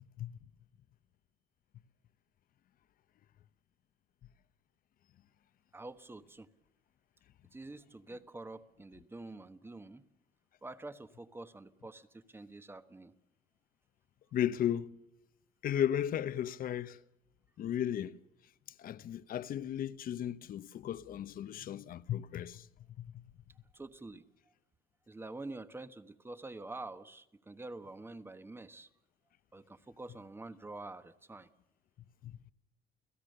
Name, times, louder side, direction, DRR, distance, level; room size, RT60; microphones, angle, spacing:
voice 1, 5.7-6.5 7.5-10.0 10.6-13.1 23.7-24.2 25.1-28.9 29.5-31.5, right 2 dB, 15° right, 1.3 m, -47 dB
voice 2, 14.3-15.0 15.6-17.0 17.6-18.2 18.8-22.7 23.0-23.2 32.2-32.4, left 10 dB, 60° left, 1.0 m, -35 dB
30.0 x 17.0 x 6.7 m
cardioid pair, 110°, 17 cm